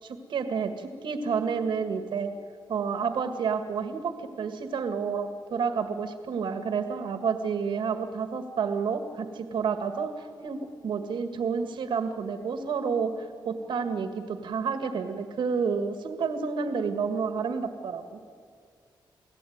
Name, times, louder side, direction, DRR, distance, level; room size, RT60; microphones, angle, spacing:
voice 1, 0.0-2.3 2.7-13.1 13.5-18.0, right 5 dB, 75° right, 8 dB, 1.8 m, -30 dB
28.5 x 17.5 x 9.4 m, 2.2 s
cardioid pair, 115°, 8 cm